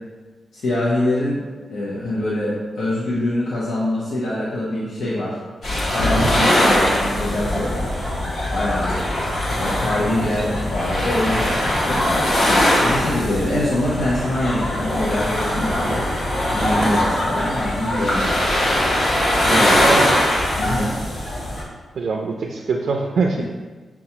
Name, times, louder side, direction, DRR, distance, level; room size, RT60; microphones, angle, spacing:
voice 1, 0.5-5.4 5.9-7.9 8.5-9.0 9.5-12.0 12.8-16.1 16.5-18.3 19.4-19.9 20.6-20.9 23.4-23.5, left 1 dB, 80° left, -7 dB, 0.8 m, -24 dB
sound 1, 5.6-21.6, left 1 dB, 50° left, 1.1 m, -21 dB
voice 2, 19.5-20.2 21.9-23.4, right 4 dB, 65° right, 0 dB, 0.3 m, -23 dB
6.7 x 2.3 x 2.8 m, 1.3 s
wide cardioid pair, 165°, 0 cm